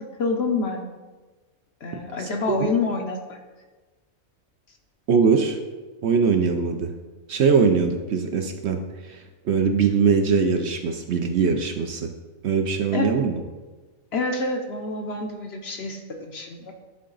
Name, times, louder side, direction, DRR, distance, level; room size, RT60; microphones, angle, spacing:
voice 1, 0.2-0.9 1.8-3.4 12.9-13.1 14.1-16.7, left 3 dB, 60° left, 4 dB, 0.8 m, -27 dB
voice 2, 2.2-2.6 5.1-5.6 6.0-6.9 7.3-12.1 12.4-13.4, right 5 dB, 65° right, 5 dB, 0.8 m, -22 dB
11.0 x 3.7 x 3.9 m, 1.3 s
omnidirectional pair, 1.4 m